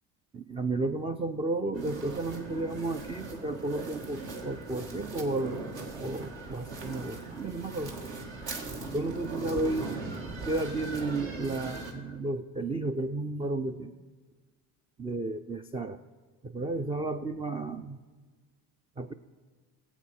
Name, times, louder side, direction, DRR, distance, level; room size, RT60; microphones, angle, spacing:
voice 1, 0.3-5.6 6.0-7.9 8.9-10.0 10.4-13.9 15.0-16.0 16.4-18.0 19.0-19.1, right 2 dB, 15° right, 7 dB, 0.3 m, -33 dB
sound 1, 1.7-11.9, right 3 dB, 65° right, 2.0 m, -39 dB
16.5 x 8.2 x 4.3 m, 1.4 s
hypercardioid pair, 70°, 47 cm